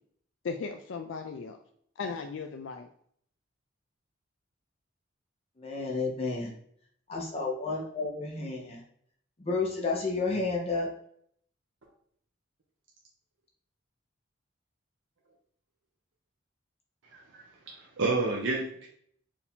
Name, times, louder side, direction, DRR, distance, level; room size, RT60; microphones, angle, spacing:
voice 1, 0.4-1.6 2.0-2.9, left 5 dB, 70° left, 5 dB, 0.4 m, -36 dB
voice 2, 5.6-6.5 7.1-8.8 9.4-10.9, left 3 dB, 30° left, -1 dB, 0.8 m, -31 dB
voice 3, 17.1-18.9, right 3 dB, 70° right, -2 dB, 0.7 m, -31 dB
4.7 x 2.7 x 3.5 m, 0.65 s
head